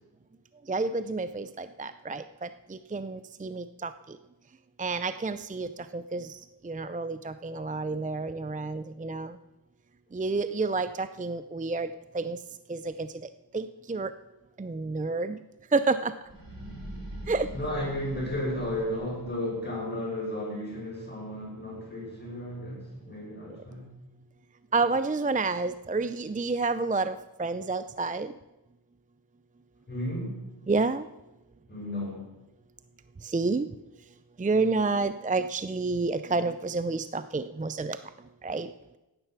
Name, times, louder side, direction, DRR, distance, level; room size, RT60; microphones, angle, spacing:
voice 1, 0.7-3.9 4.8-6.4 6.6-9.4 10.1-11.9 12.1-12.4 12.7-13.1 13.5-14.1 14.6-15.4 15.7-16.1 17.3-17.5 24.7-28.3 30.7-31.0 33.2-33.7 34.4-38.0 38.4-38.7, right 3 dB, 20° right, 12 dB, 0.5 m, -29 dB
sound 1, 16.2-19.5, right 1 dB, 60° right, 5.7 m, -42 dB
voice 2, 17.5-23.9 29.9-30.4 31.7-32.3, left 1 dB, 25° left, -3 dB, 6.2 m, -33 dB
15.5 x 10.5 x 5.9 m, 0.98 s
wide cardioid pair, 85°, 39 cm